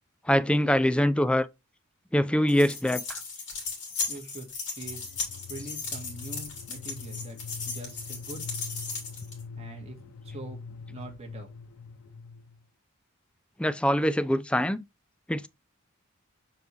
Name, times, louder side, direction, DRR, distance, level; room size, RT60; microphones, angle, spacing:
voice 1, 0.3-1.5 2.1-3.2 13.6-14.8 15.3-15.5, equal, 5° left, 0.3 m, -24 dB
sound 1, 2.5-9.4, left 4 dB, 55° left, 3.1 m, -36 dB
voice 2, 4.1-5.1 5.5-8.5 9.6-11.5, right 2 dB, 30° right, 1.8 m, -43 dB
sound 2, 4.8-12.7, left 4 dB, 85° left, 0.4 m, -43 dB
6.9 x 4.8 x 3.1 m
head